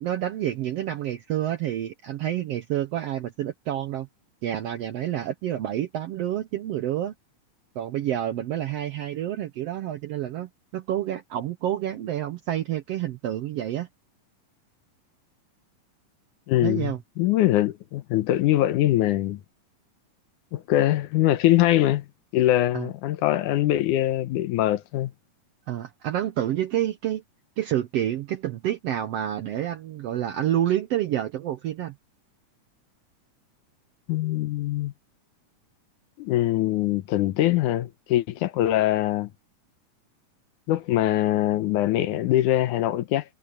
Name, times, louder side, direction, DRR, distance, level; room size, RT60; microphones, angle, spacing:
voice 1, 0.0-4.1 4.4-7.1 7.7-13.9 16.6-17.0 22.7-22.9 25.7-27.2 27.6-31.9, right 12 dB, 75° right, 1.5 m, -28 dB
voice 2, 16.5-19.4 20.5-22.1 22.3-25.1 34.1-34.9 36.2-39.3 40.7-43.2, left 14 dB, 80° left, 2.3 m, -23 dB
omnidirectional pair, 3.7 m